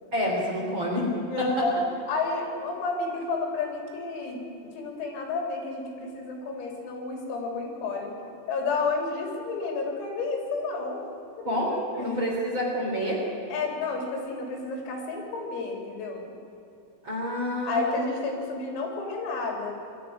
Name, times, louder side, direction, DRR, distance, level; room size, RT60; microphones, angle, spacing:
voice 1, 0.1-1.1 1.4-1.5 11.5-13.2 17.0-18.0, equal, 25° right, -3 dB, 3.4 m, -28 dB
voice 2, 1.2-1.8 2.1-8.1 8.5-11.0 11.4-12.2 13.5-16.2 17.7-19.7, left 3 dB, 85° left, 1 dB, 6.1 m, -31 dB
22.5 x 13.0 x 10.0 m, 2.7 s
omnidirectional pair, 6.0 m